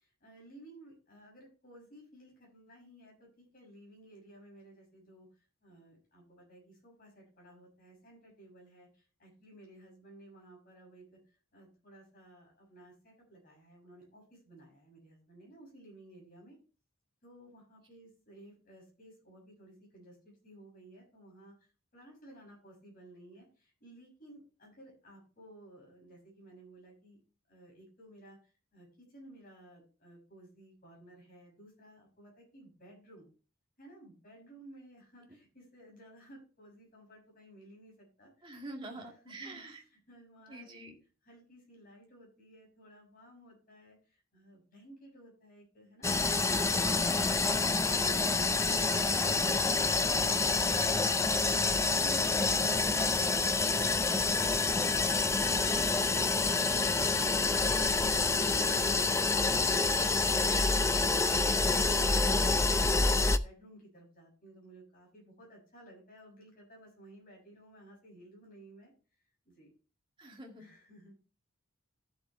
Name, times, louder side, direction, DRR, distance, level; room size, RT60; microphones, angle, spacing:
voice 1, 0.0-16.6 17.2-27.2 27.5-33.3 33.8-40.8 41.2-51.4 62.7-68.9 69.4-69.7 70.6-71.1, right 1 dB, 40° left, -2 dB, 6.6 m, -56 dB
voice 2, 38.4-39.8 40.5-41.0 70.2-70.7, right 2 dB, 25° right, 0 dB, 2.1 m, -46 dB
sound 1, 46.0-63.4, left 3 dB, 15° left, 0.4 m, -27 dB
14.0 x 7.2 x 3.2 m, 0.37 s
head